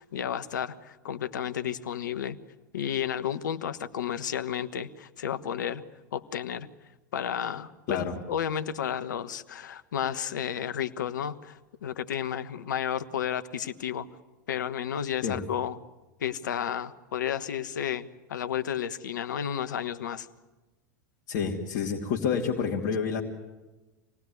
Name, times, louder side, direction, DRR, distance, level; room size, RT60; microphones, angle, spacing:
voice 1, 0.0-2.4 2.7-5.8 6.1-6.7 7.1-14.1 14.5-15.8 16.2-20.3, left 9 dB, 80° left, 13 dB, 1.3 m, -32 dB
voice 2, 21.3-23.2, left 6 dB, 60° left, -2 dB, 2.8 m, -28 dB
27.5 x 19.0 x 9.6 m, 1.1 s
hypercardioid pair, 90°, 10 cm